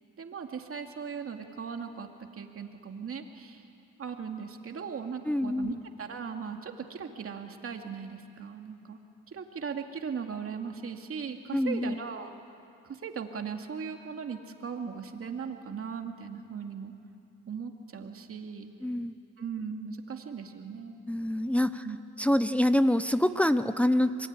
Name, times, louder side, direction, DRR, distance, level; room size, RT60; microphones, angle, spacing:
voice 1, 0.2-2.1 2.3-3.7 4.0-9.0 9.3-12.3 12.9-16.9 17.5-18.7 19.4-21.0 21.8-22.0, right 6 dB, 50° right, 4 dB, 2.5 m, -38 dB
voice 2, 5.3-5.8 11.5-12.0 18.8-19.1 21.1-21.9 22.2-24.3, left 1 dB, 5° left, 10 dB, 0.8 m, -26 dB
26.5 x 22.0 x 9.7 m, 2.5 s
cardioid pair, 90°, 30 cm